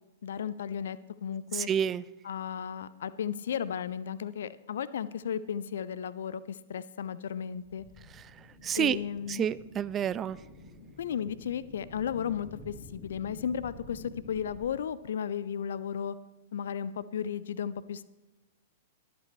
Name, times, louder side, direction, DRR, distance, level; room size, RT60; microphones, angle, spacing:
voice 1, 0.2-1.7 2.2-7.8 8.8-9.5 11.0-16.2 16.5-18.0, left 8 dB, 60° left, 18 dB, 0.5 m, -34 dB
voice 2, 1.5-2.0 8.6-9.0 9.3-10.4, right 9 dB, 20° right, 19 dB, 0.3 m, -29 dB
sound 1, 7.6-14.8, left 1 dB, 30° left, 4.3 m, -51 dB
21.0 x 8.3 x 3.1 m, 1.1 s
figure-of-eight pair, 100°, 0 cm